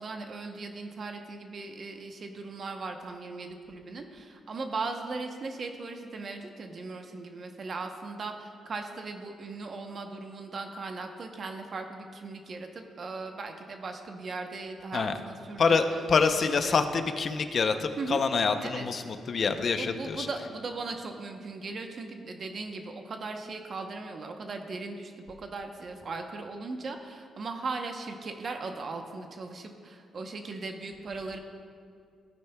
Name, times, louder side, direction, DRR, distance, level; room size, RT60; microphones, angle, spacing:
voice 1, 0.0-16.2 16.5-16.7 18.0-18.2 18.6-18.9 19.7-31.4, right 3 dB, 45° right, 4 dB, 0.9 m, -38 dB
voice 2, 15.6-20.3, left 5 dB, 50° left, 8 dB, 0.6 m, -26 dB
16.0 x 9.2 x 2.3 m, 2.3 s
cardioid pair, 110°, 0 cm